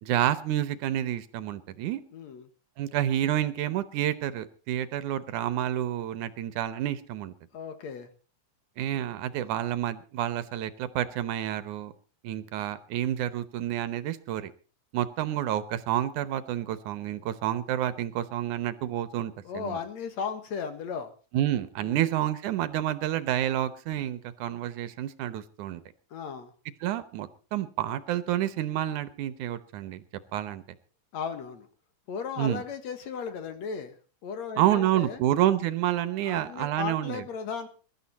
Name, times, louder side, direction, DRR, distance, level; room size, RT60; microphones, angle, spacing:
voice 1, 0.0-2.0 2.8-7.3 8.8-11.9 12.2-14.5 14.9-19.8 21.3-25.8 26.8-30.0 30.3-30.6 32.4-32.6 34.6-37.3, right 12 dB, 75° right, 14 dB, 2.4 m, -29 dB
voice 2, 2.1-2.5 7.5-8.1 19.4-21.1 21.8-22.0 26.1-26.5 31.1-31.7 32.1-34.0 34.2-35.2 36.2-37.7, left 6 dB, 60° left, 9 dB, 2.7 m, -36 dB
22.0 x 12.0 x 4.2 m, 0.37 s
omnidirectional pair, 3.7 m